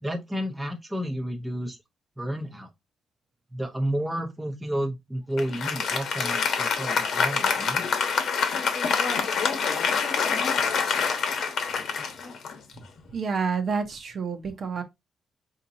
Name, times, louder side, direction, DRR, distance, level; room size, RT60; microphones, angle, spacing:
voice 1, 0.0-1.8 2.2-2.7 3.5-7.8, equal, 10° right, 0.8 m, -31 dB
Applause, 5.4-13.0, left 6 dB, 70° left, 1.0 m, -26 dB
voice 2, 13.1-14.8, right 5 dB, 50° right, 0.8 m, -28 dB
5.0 x 2.8 x 2.7 m
cardioid pair, 120°, 0 cm